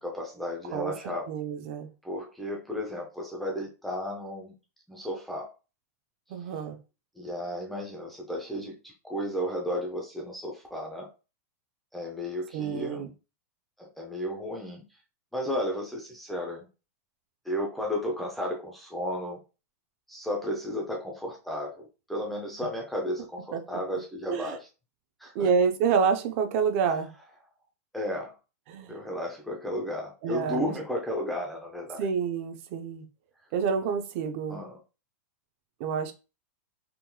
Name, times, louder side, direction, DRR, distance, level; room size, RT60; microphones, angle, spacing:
voice 1, 0.0-1.3 2.0-4.6 4.9-5.5 7.2-11.1 11.9-13.1 13.8-14.9 15.3-16.7 17.4-19.4 20.1-24.7 25.2-25.5 26.8-26.9 27.9-28.4 28.9-32.1 34.5-34.8, left 1 dB, ahead, 0.6 m, -33 dB
voice 2, 1.3-1.9 6.3-6.8 12.5-13.1 23.5-23.6 24.3-24.6 25.3-27.1 28.7-29.0 30.2-30.8 32.0-33.0 33.5-34.6 35.8-36.1, right 6 dB, 50° right, 0.6 m, -28 dB
3.7 x 3.0 x 2.2 m
supercardioid pair, 150°, 9 cm